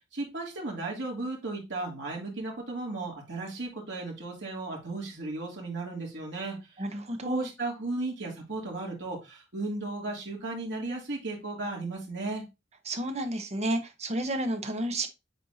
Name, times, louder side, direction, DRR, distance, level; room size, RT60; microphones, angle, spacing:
voice 1, 0.1-6.6 7.2-12.4, right 2 dB, 65° right, 2.8 m, -35 dB
voice 2, 6.8-7.5 12.9-15.1, right 1 dB, 35° right, 1.0 m, -31 dB
7.9 x 4.3 x 2.8 m
head